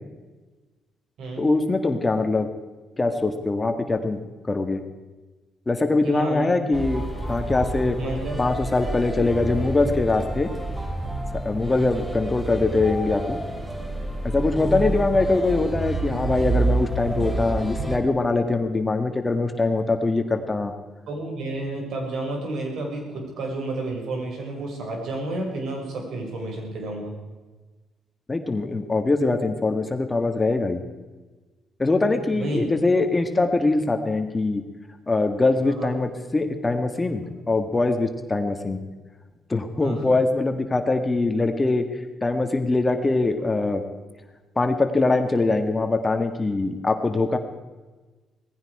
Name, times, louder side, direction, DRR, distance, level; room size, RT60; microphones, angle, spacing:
voice 1, 1.4-2.5 3.0-4.2 4.5-4.8 5.7-7.0 7.3-8.0 8.4-10.5 11.5-13.4 14.2-20.7 28.3-30.8 31.8-34.6 35.1-38.8 39.5-41.9 42.2-43.8 44.6-47.4, left 3 dB, 20° left, 6 dB, 1.7 m, -22 dB
voice 2, 6.0-6.5 8.0-8.4 21.1-27.1 32.3-32.6 35.6-35.9 39.8-40.0, right 2 dB, 70° right, 1 dB, 5.9 m, -31 dB
sound 1, 6.7-18.0, right 2 dB, 10° right, 3.3 m, -29 dB
18.5 x 15.0 x 4.9 m, 1.3 s
cardioid pair, 90°, 0 cm